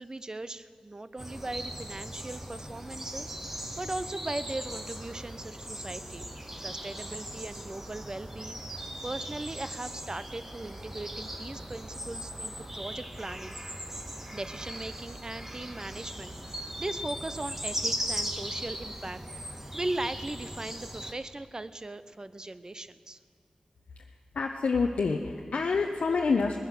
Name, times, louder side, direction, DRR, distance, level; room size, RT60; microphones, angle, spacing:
voice 1, 0.0-6.3 6.6-13.6 14.3-23.2, right 2 dB, 35° right, 13 dB, 0.6 m, -39 dB
sound 1, 1.2-21.1, equal, 15° right, 1.3 m, -39 dB
voice 2, 24.3-26.6, left 4 dB, 85° left, 2 dB, 0.7 m, -27 dB
19.5 x 10.5 x 6.6 m, 2.2 s
wide cardioid pair, 70°, 2 cm